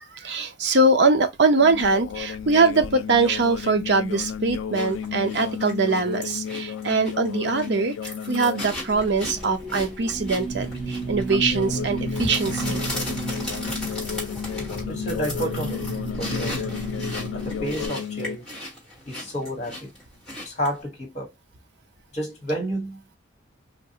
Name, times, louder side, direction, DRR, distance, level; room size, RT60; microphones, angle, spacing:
voice 1, 0.1-12.8, right 3 dB, 60° right, 0.6 m, -22 dB
sound 1, 1.6-8.7 9.0-9.4 11.3-18.4, left 8 dB, 85° left, 0.3 m, -33 dB
sound 2, 4.7-20.8, left 1 dB, 5° left, 1.4 m, -37 dB
sound 3, 8.7-17.9, right 2 dB, 30° right, 1.4 m, -33 dB
voice 2, 14.9-18.6 19.1-19.9 20.4-21.3 22.1-23.2, equal, 35° left, 1.3 m, -31 dB
3.2 x 2.4 x 2.7 m
head